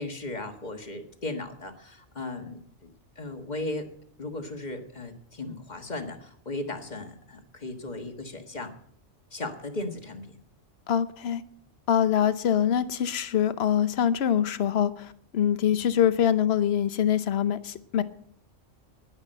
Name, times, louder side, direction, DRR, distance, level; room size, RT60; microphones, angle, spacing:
voice 1, 0.0-2.9 3.1-3.9 4.2-8.7 9.3-10.4, left 2 dB, 35° left, 5 dB, 1.7 m, -36 dB
voice 2, 10.9-11.4 11.9-15.1 15.3-18.0, left 9 dB, 55° left, 13 dB, 1.0 m, -24 dB
11.0 x 10.5 x 7.7 m, 0.64 s
omnidirectional pair, 1.3 m